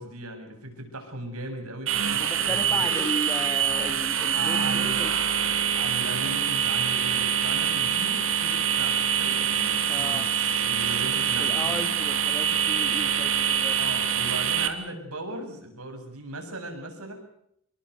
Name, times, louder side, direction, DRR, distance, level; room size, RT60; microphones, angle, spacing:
voice 1, 0.0-3.0 4.3-5.2 5.5-11.8 13.8-17.1, right 1 dB, 80° right, 5 dB, 7.4 m, -38 dB
sound 1, 1.9-14.7, right 8 dB, 60° right, 2.7 m, -25 dB
voice 2, 2.2-5.1 9.9-10.3 11.4-13.8, left 1 dB, 15° left, 8 dB, 2.8 m, -35 dB
26.0 x 22.0 x 6.8 m, 0.72 s
head